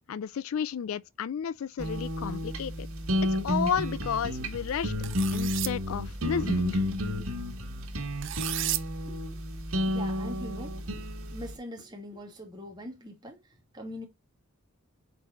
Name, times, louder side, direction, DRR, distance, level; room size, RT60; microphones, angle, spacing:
voice 1, 0.1-2.9 3.3-4.9 5.3-6.8, left 7 dB, 75° left, 0.4 m, -32 dB
sound 1, 1.8-11.6, equal, 85° right, 1.8 m, -31 dB
sound 2, 5.0-5.7 8.2-8.8, right 16 dB, 60° right, 0.5 m, -32 dB
voice 2, 9.9-11.1 11.3-14.1, equal, 20° right, 2.3 m, -42 dB
7.9 x 4.7 x 2.5 m
head